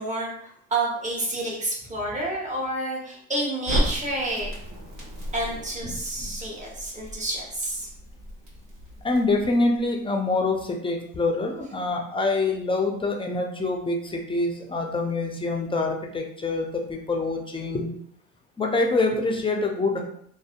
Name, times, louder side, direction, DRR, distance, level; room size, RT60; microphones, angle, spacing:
voice 1, 0.0-4.5 5.3-7.9, right 1 dB, 20° right, -2 dB, 1.0 m, -29 dB
Crackle, 3.7-9.8, equal, 60° right, 1.2 m, -34 dB
voice 2, 9.0-17.9 18.6-20.0, left 3 dB, 15° left, 1 dB, 0.5 m, -25 dB
2.5 x 2.1 x 2.5 m, 0.67 s
hypercardioid pair, 65°, 34 cm